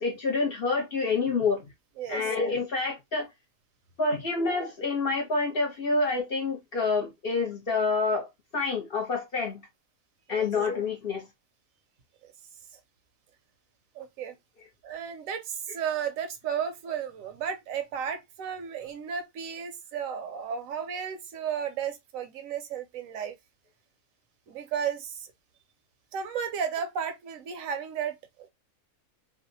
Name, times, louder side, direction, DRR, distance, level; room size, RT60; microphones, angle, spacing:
voice 1, 0.0-1.6 2.1-3.3 4.0-9.6 10.3-11.2, left 4 dB, 50° left, 0.8 m, -28 dB
voice 2, 2.0-2.3 10.3-10.5 13.9-14.3 14.8-23.4 24.5-25.3 26.1-28.5, right 7 dB, 75° right, 1.0 m, -34 dB
2.5 x 2.1 x 2.6 m
omnidirectional pair, 1.4 m